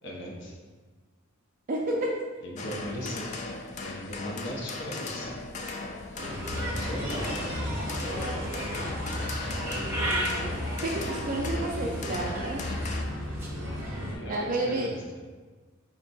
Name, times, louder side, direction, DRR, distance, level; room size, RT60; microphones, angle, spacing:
voice 1, 0.0-0.6 2.4-3.3 3.8-5.4 6.5-7.5 13.9-15.2, equal, 60° left, -1 dB, 0.7 m, -38 dB
voice 2, 1.7-2.1 10.0-10.5 10.8-12.6 14.3-14.9, right 1 dB, 40° right, -2 dB, 0.4 m, -31 dB
sound 1, 2.6-13.0, left 3 dB, 35° left, 0.3 m, -38 dB
Bird, 6.1-14.2, equal, 10° right, 0.7 m, -32 dB
4.4 x 2.2 x 4.0 m, 1.4 s
head